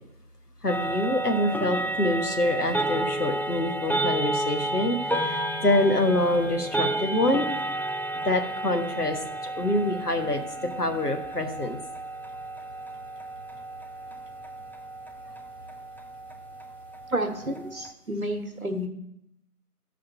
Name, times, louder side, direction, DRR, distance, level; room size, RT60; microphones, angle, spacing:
voice 1, 0.6-7.5 8.1-11.8, left 1 dB, 75° left, 5 dB, 1.3 m, -26 dB
sound 1, 0.7-17.9, right 1 dB, 5° left, 0.3 m, -32 dB
voice 2, 17.1-18.9, right 1 dB, 60° right, 6 dB, 1.1 m, -30 dB
12.0 x 5.0 x 4.4 m, 0.79 s
figure-of-eight pair, 180°, 47 cm